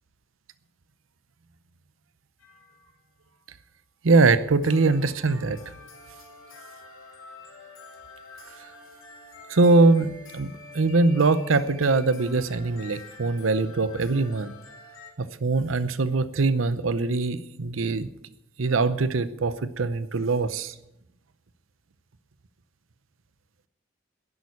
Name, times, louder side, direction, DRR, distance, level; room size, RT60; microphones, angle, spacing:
sound 1, 2.4-3.0 4.6-15.1, left 3 dB, 90° left, 3.3 m, -47 dB
voice 1, 4.0-5.6 9.5-14.5 15.2-18.1 18.6-20.7, right 3 dB, 90° right, 14 dB, 0.7 m, -22 dB
11.0 x 11.0 x 8.3 m, 0.84 s
head